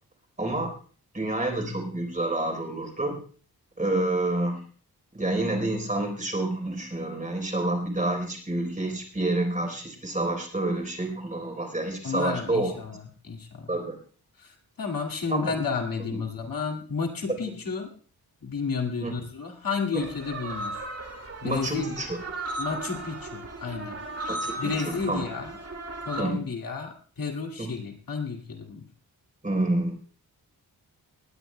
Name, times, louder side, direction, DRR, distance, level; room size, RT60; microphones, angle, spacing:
voice 1, 0.4-0.7 1.1-3.2 3.8-4.6 5.1-12.7 13.7-14.0 15.3-15.5 16.1-16.2 19.0-19.1 21.4-22.2 24.3-25.2 26.2-26.4 27.6-27.8 29.4-29.9, right 2 dB, 20° right, 2 dB, 3.9 m, -28 dB
voice 2, 12.0-13.7 14.4-17.9 18.4-20.8 21.4-21.9 22.6-24.0 24.6-25.5 26.1-28.9, left 5 dB, 60° left, 1 dB, 2.3 m, -32 dB
sound 1, 20.0-26.2, right 2 dB, 40° right, 2.1 m, -36 dB
20.5 x 17.5 x 2.2 m, 0.43 s
wide cardioid pair, 135°, 39 cm